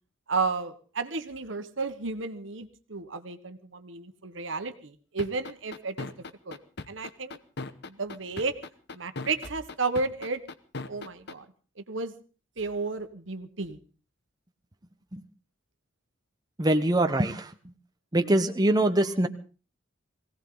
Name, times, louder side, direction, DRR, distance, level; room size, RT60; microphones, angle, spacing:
voice 1, 0.3-6.1 6.5-6.6 6.9-7.4 7.9-8.5 8.9-10.4 10.9-11.4 11.9-12.1 12.6-13.8, right 4 dB, 70° right, 9 dB, 1.5 m, -32 dB
sound 1, 5.2-11.3, left 3 dB, 60° left, 1.1 m, -37 dB
voice 2, 16.6-17.5 18.1-19.3, right 1 dB, 20° right, 7 dB, 0.9 m, -23 dB
21.5 x 17.0 x 3.9 m, 0.37 s
head